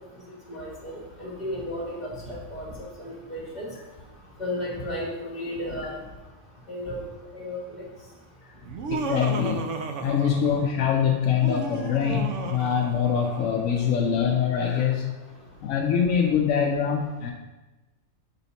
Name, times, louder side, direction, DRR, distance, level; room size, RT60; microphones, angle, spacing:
voice 1, 0.5-3.7 4.4-6.0 6.7-7.0 7.3-7.8, left 1 dB, 35° left, -5 dB, 2.0 m, -34 dB
Laughter, 8.7-10.8 11.3-13.6, right 5 dB, 70° right, 0.9 m, -34 dB
voice 2, 8.9-9.7 10.0-15.2 15.6-17.3, left 7 dB, 85° left, 1 dB, 1.0 m, -24 dB
6.9 x 4.1 x 4.1 m, 1.1 s
omnidirectional pair, 1.4 m